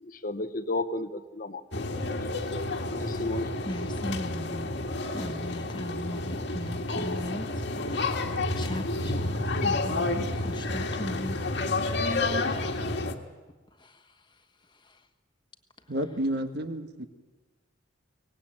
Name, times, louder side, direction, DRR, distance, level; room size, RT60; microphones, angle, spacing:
voice 1, 0.0-1.9 2.9-3.5, left 2 dB, 45° left, 0.9 m, -33 dB
sound 1, 1.7-13.1, left 2 dB, 60° left, 1.8 m, -30 dB
voice 2, 3.6-4.7 5.1-7.5 7.7-11.5 13.8-14.1 14.8-15.0, left 1 dB, 25° left, 1.5 m, -38 dB
voice 3, 15.9-17.1, right 1 dB, 55° right, 1.5 m, -30 dB
24.0 x 18.5 x 8.9 m
head